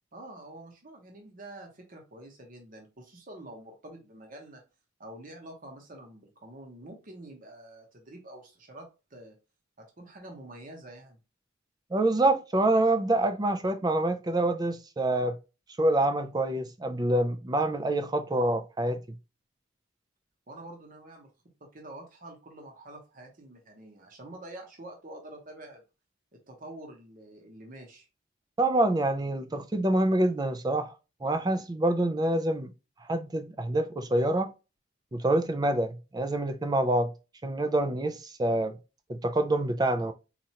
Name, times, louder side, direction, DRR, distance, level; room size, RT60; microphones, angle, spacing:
voice 1, 0.1-4.6 5.0-9.3 9.8-11.2 20.5-21.3 21.6-25.8 26.5-28.1, right 1 dB, 40° right, 0.8 m, -47 dB
voice 2, 11.9-15.4 15.8-19.0 28.6-30.9 31.2-32.7 33.1-34.5 35.1-37.1 37.4-38.8 39.1-40.1, right 1 dB, 20° right, 0.3 m, -26 dB
4.2 x 2.5 x 2.8 m
head